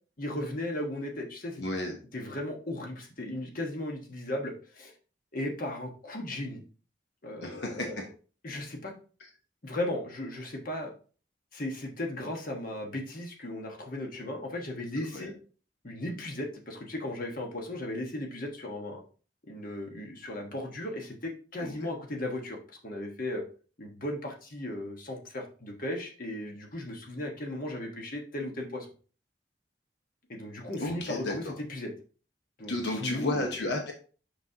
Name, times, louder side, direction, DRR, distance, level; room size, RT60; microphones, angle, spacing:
voice 1, 0.2-1.6 2.1-4.9 5.3-6.6 7.2-8.0 8.4-8.9 9.6-10.9 11.5-15.3 15.8-19.0 19.5-22.6 22.8-23.4 23.8-28.9 30.3-31.9 32.6-33.6, left 1 dB, 55° left, 2 dB, 1.3 m, -36 dB
voice 2, 1.6-2.0 7.4-7.9 15.0-15.3 21.6-21.7 30.8-31.5 32.7-33.9, left 2 dB, 75° left, 2 dB, 1.0 m, -32 dB
6.1 x 6.0 x 2.8 m, 0.38 s
head